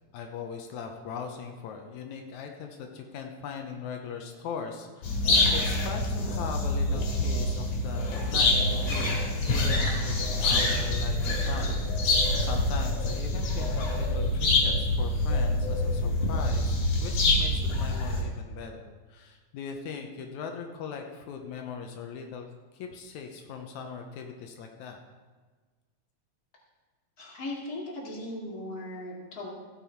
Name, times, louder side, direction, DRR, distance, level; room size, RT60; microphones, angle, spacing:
voice 1, 0.1-25.0, left 6 dB, 85° left, 3 dB, 2.3 m, -40 dB
sound 1, 5.0-18.2, left 2 dB, 70° left, 3.2 m, -26 dB
voice 2, 27.2-29.5, left 1 dB, 35° left, -3 dB, 2.6 m, -38 dB
15.5 x 7.6 x 4.5 m, 1.4 s
omnidirectional pair, 3.3 m